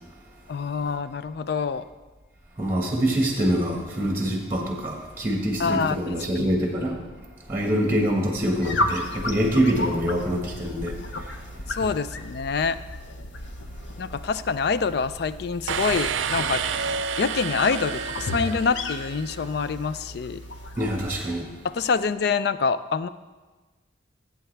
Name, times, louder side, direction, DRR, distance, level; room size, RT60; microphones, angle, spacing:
voice 1, 0.5-1.8 5.6-6.6 11.7-12.8 14.0-16.6 17.2-20.4 21.6-23.1, left 5 dB, 55° left, 14 dB, 0.4 m, -26 dB
voice 2, 2.6-7.0 7.5-11.3 20.8-21.5, equal, 10° right, 0 dB, 1.4 m, -25 dB
sound 1, 8.6-21.3, left 1 dB, 75° left, 0.8 m, -34 dB
sound 2, 15.7-19.4, right 6 dB, 85° right, 0.5 m, -29 dB
16.0 x 8.0 x 3.4 m, 1.3 s
head